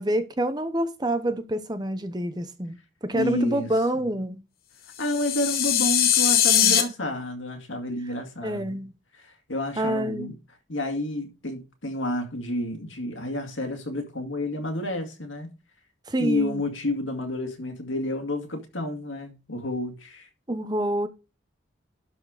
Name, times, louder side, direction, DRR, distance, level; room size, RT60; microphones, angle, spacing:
voice 1, 0.0-4.4 6.6-6.8 8.4-8.9 9.8-10.3 16.1-16.6 20.5-21.1, right 1 dB, 20° right, 0.7 m, -27 dB
voice 2, 3.1-4.1 5.0-8.8 9.2-10.4 10.7-15.5 16.2-20.3, left 1 dB, 85° left, 2.2 m, -30 dB
sound 1, 5.0-6.8, left 9 dB, 50° left, 1.2 m, -21 dB
12.0 x 4.4 x 5.0 m
head